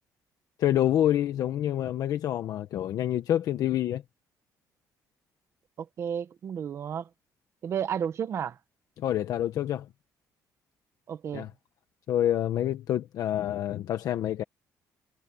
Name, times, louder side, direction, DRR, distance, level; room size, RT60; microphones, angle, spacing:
voice 1, 0.6-4.0 9.0-9.9 11.3-11.5 12.1-14.4, left 11 dB, 65° left, 1.1 m, -27 dB
voice 2, 5.8-7.1 7.6-8.6 11.1-11.5, right 8 dB, 45° right, 1.0 m, -32 dB
cardioid pair, 165°, 7 cm